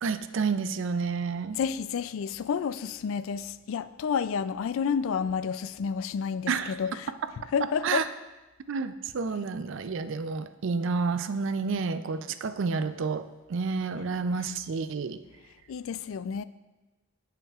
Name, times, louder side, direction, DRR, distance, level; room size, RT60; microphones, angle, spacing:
voice 1, 0.0-1.6 6.5-6.8 7.8-8.0 8.7-13.2 13.5-15.2, right 4 dB, 65° right, 0.4 m, -30 dB
voice 2, 1.5-7.1 7.5-8.0 15.7-16.4, left 6 dB, 70° left, 0.3 m, -30 dB
16.0 x 5.7 x 2.4 m
head